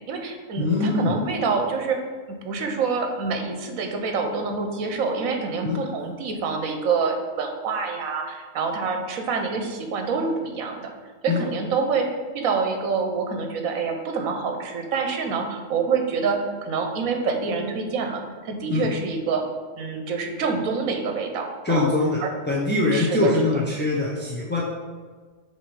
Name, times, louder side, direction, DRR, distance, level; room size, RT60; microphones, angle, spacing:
voice 1, 0.0-2.0 2.3-10.9 11.2-12.1 12.3-19.4 19.8-21.9 22.2-22.3 22.9-23.3, right 5 dB, 80° right, 4 dB, 1.2 m, -26 dB
voice 2, 0.6-1.1 5.6-5.8 11.3-11.4 18.7-18.9 21.6-22.2 22.5-24.6, left 2 dB, 15° left, -6 dB, 0.4 m, -22 dB
7.1 x 3.0 x 4.7 m, 1.5 s
omnidirectional pair, 1.5 m